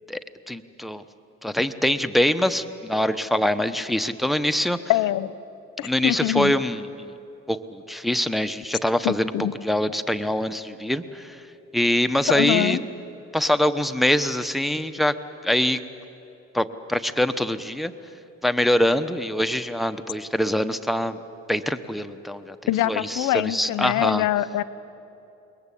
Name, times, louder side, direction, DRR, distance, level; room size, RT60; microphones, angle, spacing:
voice 1, 0.5-1.0 1.4-4.8 5.8-7.1 7.5-9.3 9.6-11.4 11.7-12.8 13.3-15.1 15.4-15.8 16.5-17.9 18.4-21.2 21.5-22.6 22.9-24.3, left 1 dB, ahead, 8 dB, 1.0 m, -24 dB
voice 2, 4.9-5.3 5.8-6.5 9.0-9.5 12.3-12.8 22.7-24.6, left 14 dB, 85° left, 16 dB, 0.8 m, -24 dB
28.0 x 22.0 x 8.5 m, 2.9 s
cardioid pair, 90°, 30 cm